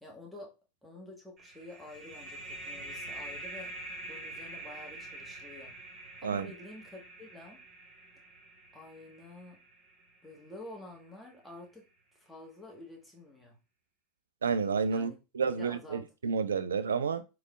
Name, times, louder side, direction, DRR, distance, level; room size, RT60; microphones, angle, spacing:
voice 1, 0.0-0.5 0.8-3.7 4.1-5.7 6.2-7.6 8.7-9.6 10.2-11.8 12.1-13.6 14.9-15.2 15.5-16.0, left 2 dB, ahead, 1.3 m, -49 dB
sound 1, 1.4-10.7, right 1 dB, 30° right, 1.3 m, -45 dB
voice 2, 14.4-17.2, right 5 dB, 75° right, 0.3 m, -30 dB
3.8 x 3.3 x 2.3 m
figure-of-eight pair, 80°, 0 cm